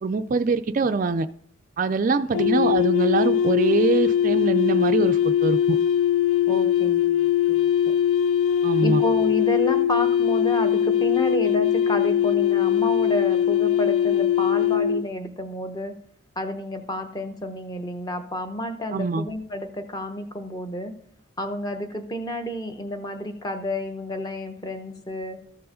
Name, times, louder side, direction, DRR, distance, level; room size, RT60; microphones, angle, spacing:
voice 1, 0.0-1.3 1.8-5.8 8.6-9.0 18.9-19.2, right 4 dB, 40° right, 9 dB, 0.3 m, -23 dB
sound 1, 2.3-15.1, left 9 dB, 75° left, 0.3 m, -21 dB
voice 2, 6.5-7.7 8.8-15.9 16.4-20.9 21.4-25.4, equal, 20° left, 6 dB, 0.8 m, -30 dB
14.0 x 4.7 x 5.0 m, 0.66 s
head